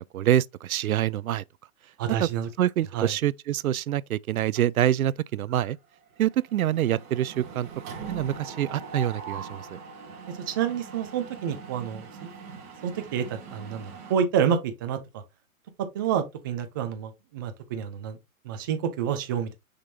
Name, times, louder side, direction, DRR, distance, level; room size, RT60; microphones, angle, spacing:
voice 1, 0.1-1.4 2.2-2.3 2.6-5.8 6.2-7.7 8.1-9.7, right 12 dB, 80° right, 0.5 m, -25 dB
voice 2, 2.0-2.5 2.9-3.1 10.5-12.3 12.8-15.0 15.8-18.2 18.4-19.6, right 8 dB, 15° right, 0.5 m, -28 dB
Mechanisms, 4.6-5.2 5.5-5.7 6.0-14.1, right 5 dB, 35° right, 2.4 m, -42 dB
6.7 x 5.3 x 2.7 m
hypercardioid pair, 145°, 42 cm